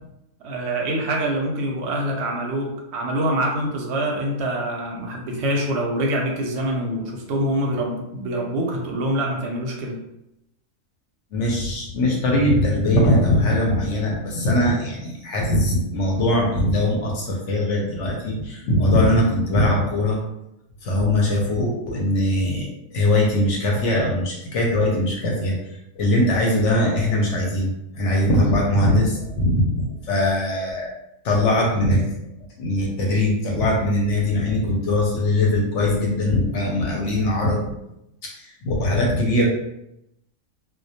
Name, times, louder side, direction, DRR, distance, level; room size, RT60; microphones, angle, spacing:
voice 1, 0.4-10.0, right 1 dB, 65° right, 0 dB, 0.7 m, -25 dB
voice 2, 11.3-20.2 20.8-25.6 26.0-30.9 31.2-32.0 32.6-37.7 38.2-39.5, left 1 dB, 70° left, -1 dB, 0.8 m, -21 dB
2.2 x 2.1 x 2.7 m, 0.85 s
omnidirectional pair, 1.4 m